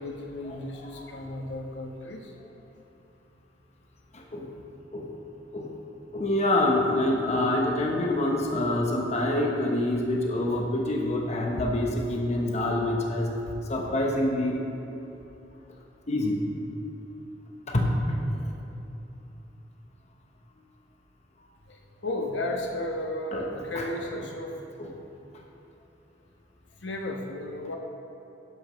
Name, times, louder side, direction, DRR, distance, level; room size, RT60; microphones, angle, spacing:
voice 1, 0.0-2.3 21.7-23.3 23.6-24.5 26.8-27.8, left 1 dB, 80° left, 1 dB, 1.2 m, -34 dB
voice 2, 0.8-1.1 4.1-4.5 4.9-5.1 5.5-5.7 6.1-13.4 13.7-14.6 16.1-16.5 17.7-18.0 18.3-18.4 23.3-23.9 24.8-24.9, left 1 dB, 40° left, 0 dB, 0.9 m, -26 dB
12.5 x 10.5 x 3.1 m, 2.9 s
head